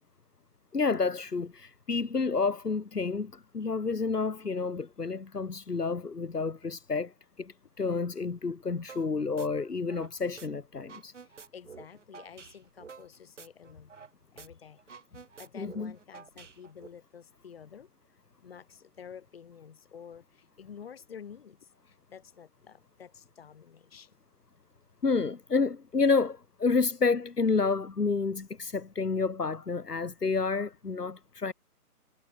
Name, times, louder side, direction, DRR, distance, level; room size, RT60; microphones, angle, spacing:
voice 1, 0.7-7.1 7.4-11.1 15.5-15.9 25.0-31.5, left 4 dB, 85° left, 1.4 m, -29 dB
sound 1, 8.9-9.1 9.4-10.5 10.8-14.1 14.4-14.5 14.8-16.9, right 5 dB, 50° right, 3.2 m, -49 dB
voice 2, 11.2-13.9 14.3-14.8 15.4-17.9 18.4-24.1, left 7 dB, 40° left, 4.1 m, -50 dB
figure-of-eight pair, 150°, 46 cm